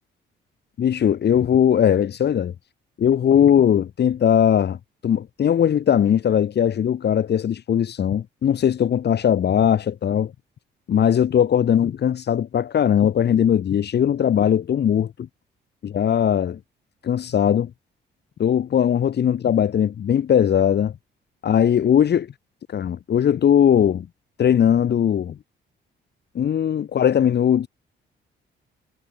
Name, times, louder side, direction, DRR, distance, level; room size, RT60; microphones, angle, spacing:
voice 1, 0.8-2.5 3.0-4.8 5.0-10.3 10.9-15.1 15.8-16.6 17.0-17.7 18.4-20.9 21.4-22.3 22.7-24.1 24.4-25.4 26.3-27.7, left 9 dB, 60° left, 2.7 m, -19 dB
cardioid pair, 90°, 20 cm